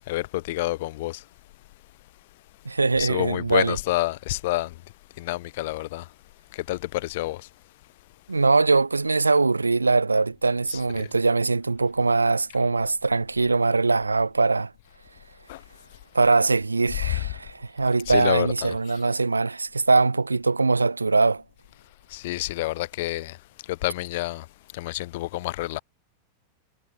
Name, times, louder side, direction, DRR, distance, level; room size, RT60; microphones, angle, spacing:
voice 1, 0.1-1.2 3.0-4.7 5.2-6.0 6.5-7.5 15.5-15.6 18.1-18.7 22.1-23.4 23.7-24.4 24.7-25.8, left 18 dB, 50° left, 1.6 m, -28 dB
voice 2, 2.6-3.8 8.3-14.7 16.1-21.4, right 3 dB, 80° right, 2.5 m, -22 dB
figure-of-eight pair, 90°, 0 cm